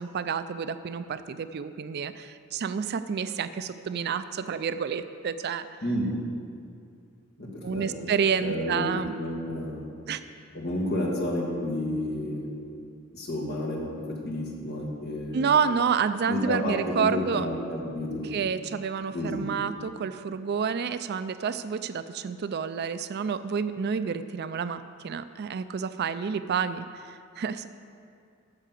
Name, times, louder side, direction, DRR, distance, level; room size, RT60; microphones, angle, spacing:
voice 1, 0.0-5.7 7.6-9.1 10.1-10.2 15.3-17.5 18.3-27.7, right 6 dB, 50° right, 12 dB, 0.4 m, -29 dB
voice 2, 7.4-8.1 8.4-8.9 9.2-9.9 10.5-12.5 13.1-15.5 16.3-18.3 19.1-19.5, left 1 dB, 55° left, -2 dB, 2.1 m, -31 dB
9.8 x 6.6 x 7.6 m, 2.4 s
head